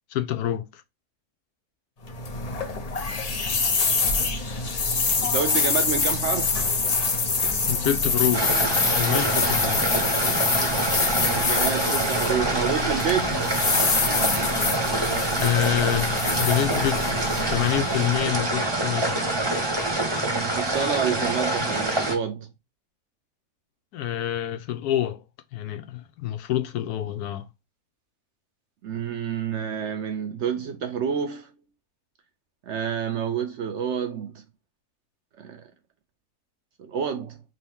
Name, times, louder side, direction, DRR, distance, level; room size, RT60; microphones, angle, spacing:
voice 1, 0.1-0.8 7.7-8.5 9.0-9.9 15.4-17.0 17.5-19.3 23.9-25.2 25.5-27.5, left 12 dB, 85° left, 1.1 m, -27 dB
sound 1, 2.0-18.2, left 4 dB, 50° left, 0.4 m, -25 dB
voice 2, 5.2-6.6 11.0-13.4 20.2-22.5 28.8-31.5 32.6-34.4 35.4-35.7 36.8-37.4, right 7 dB, 65° right, 0.7 m, -29 dB
sound 2, 8.3-22.1, right 2 dB, 20° right, 0.8 m, -26 dB
3.8 x 2.7 x 3.4 m
omnidirectional pair, 1.6 m